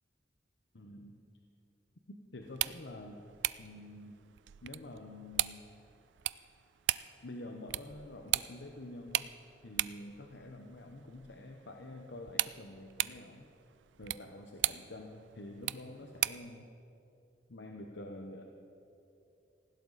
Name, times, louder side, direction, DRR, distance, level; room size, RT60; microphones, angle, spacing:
voice 1, 0.7-1.2 2.1-3.2 3.6-4.2 4.6-5.7 7.2-9.3 9.6-13.5 14.0-16.7 17.5-18.4, left 1 dB, 75° left, 3 dB, 1.0 m, -47 dB
sound 1, 2.4-16.5, right 15 dB, 85° right, 0.4 m, -39 dB
19.0 x 16.0 x 4.1 m, 2.8 s
head